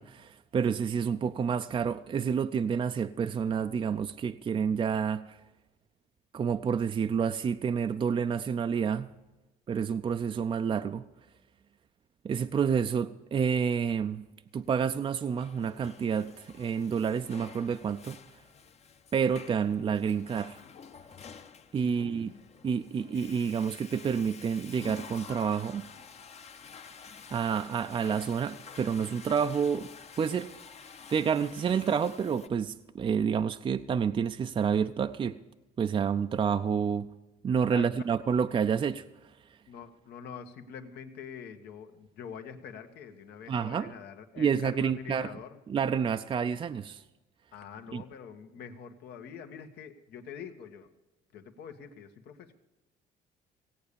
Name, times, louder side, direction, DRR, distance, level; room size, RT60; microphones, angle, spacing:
voice 1, 0.0-5.4 6.3-9.1 9.7-11.0 12.2-14.2 14.5-18.2 19.1-20.6 21.7-22.3 22.6-25.8 27.3-29.9 30.2-30.5 31.1-35.4 35.8-37.1 37.4-39.0 43.5-43.9 44.4-45.3 45.7-47.0 47.9-48.0, right 7 dB, 30° right, 9 dB, 0.5 m, -29 dB
Water / Toilet flush, 15.0-32.5, left 6 dB, 40° left, 0.9 m, -49 dB
voice 2, 21.8-22.4 37.7-37.9 39.7-45.6 47.5-50.9 51.3-52.5, left 7 dB, 75° left, 7 dB, 1.5 m, -45 dB
17.0 x 8.6 x 6.8 m, 1.1 s
cardioid pair, 110°, 17 cm